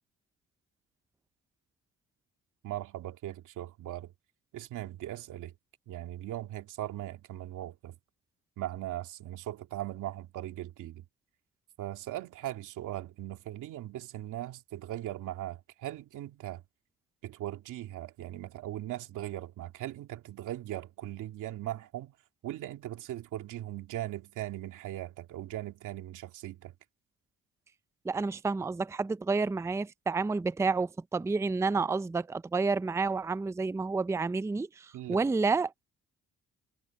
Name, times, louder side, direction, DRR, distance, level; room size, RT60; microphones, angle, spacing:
voice 1, 2.6-4.1 4.5-5.5 5.9-8.0 8.6-11.0 11.8-16.6 17.2-22.1 22.4-26.7 34.9-35.2, right 14 dB, 85° right, 2.5 m, -39 dB
voice 2, 28.0-35.7, right 4 dB, 10° right, 0.4 m, -30 dB
cardioid pair, 90°, 30 cm